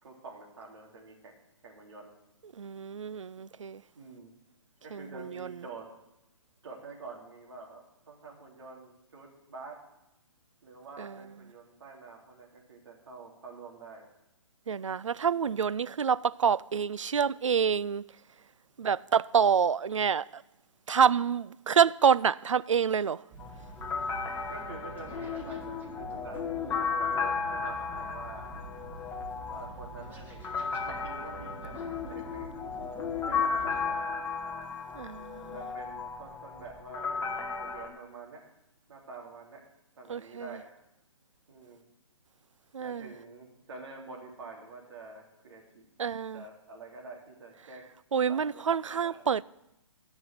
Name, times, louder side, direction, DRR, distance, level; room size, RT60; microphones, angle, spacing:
voice 1, 0.0-2.1 4.0-4.3 4.8-5.9 6.6-9.8 10.6-14.1 15.2-15.6 24.5-28.5 29.5-32.5 33.3-34.0 35.4-38.4 38.9-39.7 40.0-40.7 41.5-41.8 42.8-45.8 46.3-47.9 48.3-49.2, right 3 dB, 55° right, 3.6 m, -47 dB
voice 2, 2.6-3.8 4.9-5.5 11.0-11.1 14.7-18.0 18.8-20.4 20.9-23.2 34.9-35.6 40.1-40.5 42.7-43.1 46.0-46.4 48.1-49.4, right 7 dB, 75° right, 0.4 m, -27 dB
sound 1, 23.3-34.0, right 2 dB, 10° right, 1.9 m, -47 dB
sound 2, 23.4-37.9, left 5 dB, 15° left, 1.2 m, -34 dB
13.0 x 6.1 x 8.1 m
figure-of-eight pair, 130°, 16 cm